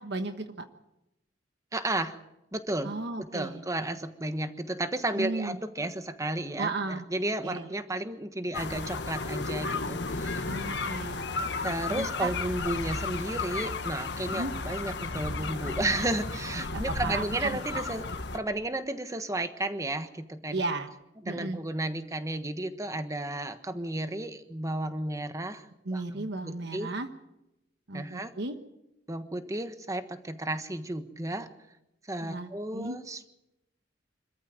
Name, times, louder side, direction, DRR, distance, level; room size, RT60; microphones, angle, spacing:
voice 1, 0.0-0.6 2.8-3.6 5.2-5.6 6.6-7.0 7.4-7.7 10.5-11.3 11.9-12.3 14.3-14.5 16.5-17.8 20.5-20.9 21.2-21.6 25.8-27.1 27.9-28.6 32.2-33.0, right 3 dB, 65° right, 7 dB, 1.3 m, -34 dB
voice 2, 1.7-2.2 2.5-10.5 11.6-18.0 18.3-20.6 21.2-26.9 27.9-28.3 29.1-31.5 32.1-33.3, right 1 dB, 20° right, 9 dB, 1.4 m, -33 dB
sound 1, 8.5-18.4, left 3 dB, 70° left, 1.5 m, -34 dB
26.0 x 14.0 x 7.8 m, 0.91 s
head